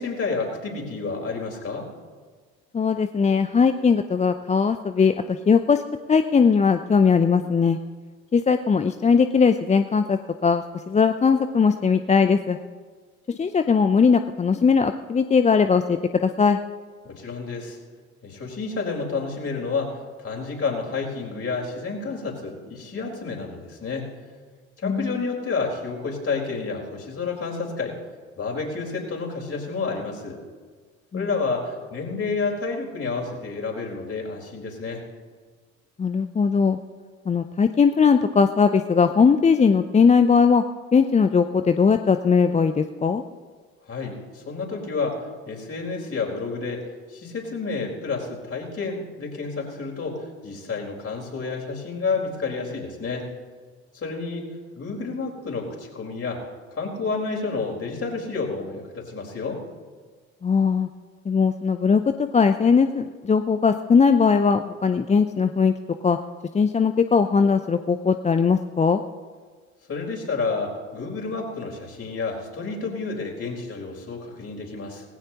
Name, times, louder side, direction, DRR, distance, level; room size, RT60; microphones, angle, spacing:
voice 1, 0.0-1.9 17.0-17.8 18.2-24.1 24.8-28.0 28.4-30.4 31.1-35.0 43.9-46.8 47.1-53.2 53.9-56.4 56.7-59.6 69.9-75.0, left 4 dB, 35° left, -1 dB, 4.4 m, -30 dB
voice 2, 2.7-5.8 6.1-7.8 8.3-12.6 13.3-16.6 24.8-25.2 31.1-31.3 36.0-36.8 37.3-40.6 40.9-43.2 60.4-60.9 61.3-62.0 62.3-65.7 66.0-66.2 66.5-69.0, left 5 dB, 15° left, 9 dB, 0.6 m, -19 dB
19.0 x 16.5 x 3.0 m, 1.5 s
hypercardioid pair, 55°, 40 cm